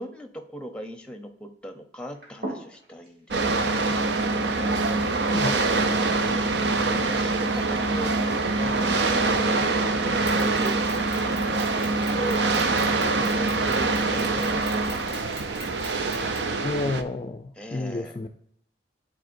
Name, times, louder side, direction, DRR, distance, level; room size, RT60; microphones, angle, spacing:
voice 1, 0.0-4.8 6.1-10.8 11.5-15.6 17.6-18.2, equal, 5° left, 6 dB, 0.7 m, -39 dB
sound 1, 2.0-9.2, right 1 dB, 55° right, 2.6 m, -42 dB
sound 2, 3.3-17.0, right 3 dB, 80° right, 0.6 m, -24 dB
Mechanisms, 10.3-16.6, right 1 dB, 30° right, 1.7 m, -43 dB
voice 2, 16.6-18.3, left 2 dB, 30° left, 6 dB, 0.3 m, -30 dB
10.5 x 4.1 x 2.6 m, 0.72 s
head